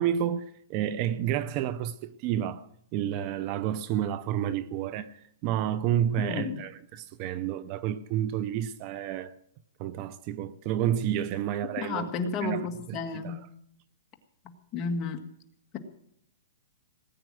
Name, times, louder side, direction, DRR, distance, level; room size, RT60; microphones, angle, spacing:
voice 1, 0.0-5.1 5.4-9.3 9.8-12.1 12.4-13.4, right 10 dB, 35° right, 0.7 m, -30 dB
voice 2, 6.2-6.6 11.8-13.4 14.7-15.2, left 4 dB, 25° left, 1.8 m, -32 dB
19.0 x 9.2 x 7.7 m
hypercardioid pair, 155°, 0 cm